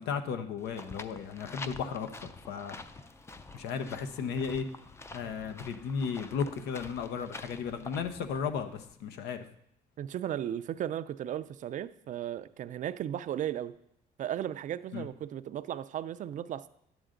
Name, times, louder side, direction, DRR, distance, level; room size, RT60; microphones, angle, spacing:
voice 1, 0.0-2.8 3.5-4.7 5.1-9.4 14.9-15.1, left 6 dB, 85° left, 0.9 m, -35 dB
sound 1, 0.6-8.9, left 3 dB, 15° left, 0.5 m, -47 dB
voice 2, 10.0-13.8 14.2-16.7, right 10 dB, 50° right, 0.4 m, -35 dB
10.5 x 8.0 x 3.8 m
cardioid pair, 110°, 17 cm